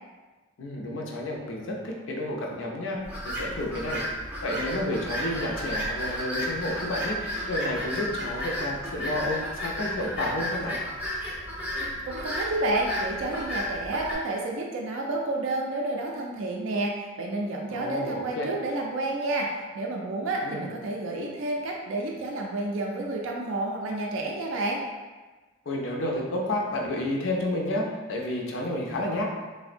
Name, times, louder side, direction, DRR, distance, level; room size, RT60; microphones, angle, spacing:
voice 1, 0.6-10.8 17.7-18.5 20.4-20.7 25.7-29.2, left 1 dB, 70° left, -1 dB, 0.5 m, -31 dB
sound 1, 3.0-14.1, equal, 10° right, 0.4 m, -33 dB
voice 2, 11.8-24.8, right 2 dB, 75° right, 0 dB, 0.4 m, -30 dB
3.5 x 2.0 x 2.5 m, 1.3 s
head